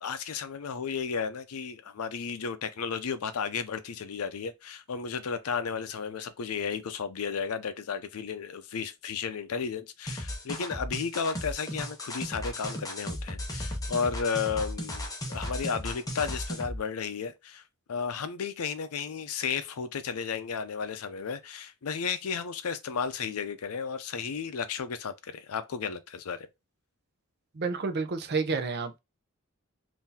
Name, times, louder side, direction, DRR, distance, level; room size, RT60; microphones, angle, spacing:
voice 1, 0.0-26.5, left 6 dB, 80° left, 0.5 m, -33 dB
sound 1, 10.1-16.8, left 1 dB, 15° left, 0.7 m, -35 dB
voice 2, 27.6-29.0, right 4 dB, 50° right, 0.5 m, -30 dB
3.8 x 2.6 x 2.7 m
head